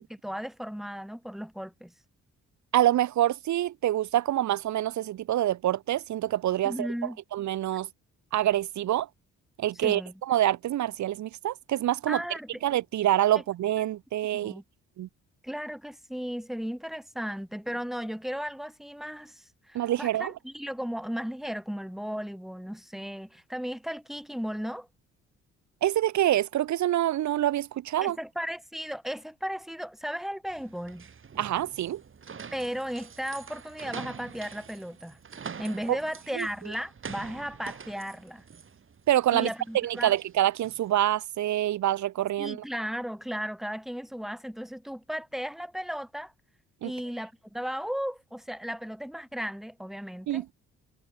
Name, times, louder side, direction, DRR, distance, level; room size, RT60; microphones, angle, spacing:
voice 1, 0.1-1.9 6.6-7.2 9.8-10.1 12.1-12.5 14.4-14.6 15.4-24.9 28.0-31.1 32.5-35.2 35.6-38.4 39.3-40.1 42.4-46.3 46.8-50.4, equal, ahead, 3.1 m, -35 dB
voice 2, 2.7-6.9 7.3-7.9 8.3-9.1 9.6-12.2 12.6-14.5 15.0-15.1 19.7-20.3 25.8-28.2 31.4-32.0 35.9-36.0 36.3-36.5 39.1-39.5 39.7-42.6 46.8-46.9 50.3-50.5, right 13 dB, 70° right, 1.2 m, -26 dB
sound 1, 30.5-40.9, right 6 dB, 45° right, 6.4 m, -45 dB
cardioid pair, 90°, 30 cm